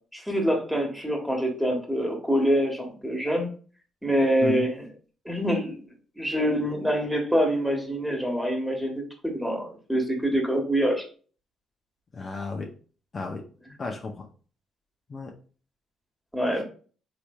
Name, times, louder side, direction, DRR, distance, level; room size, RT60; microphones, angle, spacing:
voice 1, 0.1-3.5 4.0-4.7 5.2-5.8 6.2-11.0 16.3-16.6, equal, ahead, 1 dB, 1.3 m, -25 dB
voice 2, 12.1-12.7 13.1-13.4 13.8-14.3 15.1-15.3, left 3 dB, 40° left, 1 dB, 0.6 m, -33 dB
4.0 x 3.1 x 2.3 m, 0.41 s
supercardioid pair, 70°, 0 cm